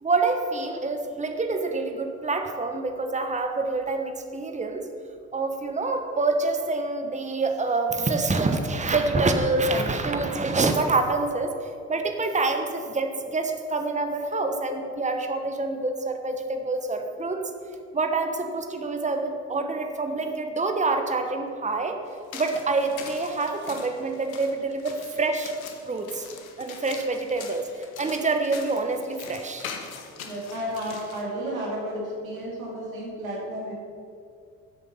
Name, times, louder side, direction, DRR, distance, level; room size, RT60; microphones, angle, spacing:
voice 1, 0.0-4.9 5.3-17.4 17.9-22.0 22.3-25.5 25.8-26.3 26.6-27.7 28.0-29.7, right 3 dB, 15° right, 5 dB, 1.2 m, -26 dB
sound 1, 22.1-31.2, left 6 dB, 85° left, 1.0 m, -42 dB
voice 2, 30.2-33.7, equal, 90° right, -4 dB, 2.3 m, -32 dB
11.5 x 7.6 x 5.6 m, 2.3 s
hypercardioid pair, 50°, 40 cm